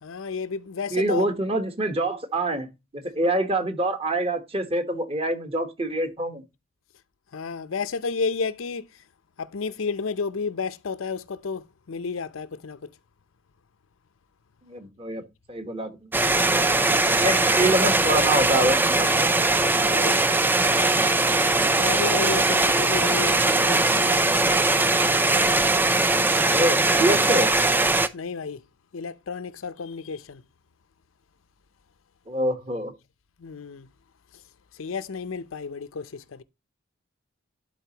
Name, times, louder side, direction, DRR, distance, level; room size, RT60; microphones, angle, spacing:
voice 1, 0.0-1.3 7.3-9.0 9.4-12.9 19.8-20.3 21.7-24.3 28.1-28.6 28.9-30.4 33.4-33.9 34.3-34.4 34.7-36.4, left 4 dB, 90° left, 0.6 m, -32 dB
voice 2, 0.9-2.7 2.9-6.4 14.7-15.9 17.1-19.1 24.5-24.6 26.5-27.5 32.3-32.9, right 1 dB, 30° right, 1.1 m, -25 dB
sound 1, 16.1-28.1, right 2 dB, 10° right, 0.4 m, -21 dB
11.5 x 4.1 x 2.9 m
head